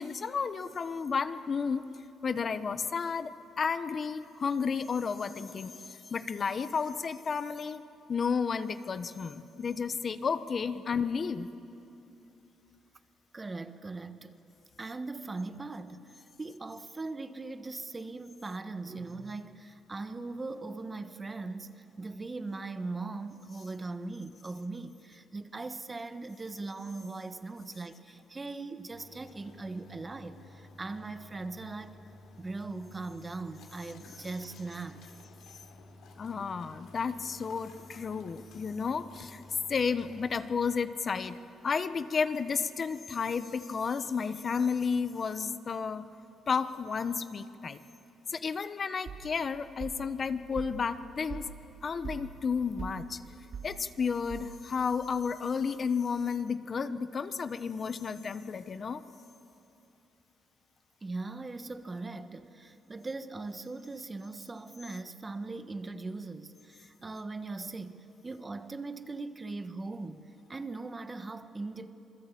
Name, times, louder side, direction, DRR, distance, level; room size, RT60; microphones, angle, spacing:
voice 1, 0.0-1.9 2.2-7.8 8.1-11.5 36.2-39.4 39.7-41.4 41.6-46.1 46.5-47.8 48.3-51.5 51.8-53.2 53.6-59.0, left 5 dB, 45° left, 0.9 m, -32 dB
voice 2, 13.3-14.4 14.8-32.0 32.4-35.0 61.0-71.9, right 3 dB, 25° right, 1.3 m, -40 dB
sound 1, 28.9-40.5, left 2 dB, 80° left, 3.3 m, -53 dB
sound 2, 49.1-54.9, right 6 dB, 65° right, 2.6 m, -45 dB
27.0 x 21.5 x 8.5 m
cardioid pair, 90°, 0 cm